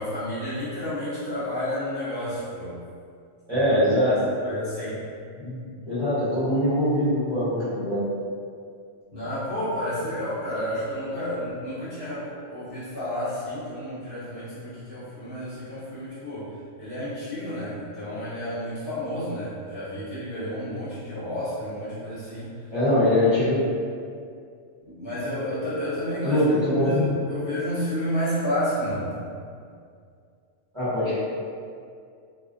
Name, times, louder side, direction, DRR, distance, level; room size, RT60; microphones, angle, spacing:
voice 1, 0.0-2.7 3.5-3.6 4.0-5.1 9.1-16.5 16.8-22.5 24.8-29.1, equal, 55° left, -12 dB, 1.1 m, -31 dB
voice 2, 3.5-4.1 5.4-8.0 22.7-23.7 26.2-27.1 30.7-31.2, left 1 dB, 25° right, -15 dB, 0.8 m, -22 dB
2.4 x 2.1 x 2.4 m, 2.3 s
omnidirectional pair, 1.3 m